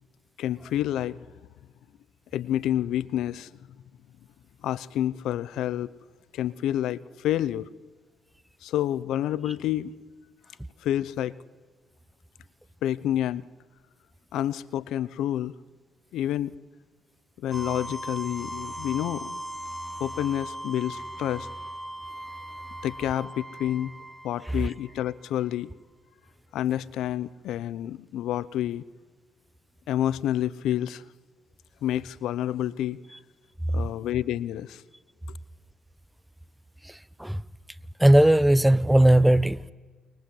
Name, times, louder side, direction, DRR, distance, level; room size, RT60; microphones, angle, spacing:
voice 1, 0.4-1.2 2.3-3.5 4.6-5.9 6.3-7.7 8.6-9.9 10.8-11.3 12.8-13.4 14.3-15.5 16.1-16.5 17.4-19.4 20.0-21.5 22.8-23.9 24.2-25.7 26.5-28.8 29.9-31.0 31.8-33.0 33.7-34.8, left 12 dB, 80° left, 0.9 m, -28 dB
sound 1, 17.5-25.3, right 1 dB, 15° left, 3.8 m, -38 dB
voice 2, 38.0-39.7, right 1 dB, 5° right, 1.0 m, -18 dB
29.5 x 24.5 x 7.9 m
supercardioid pair, 65°, 0 cm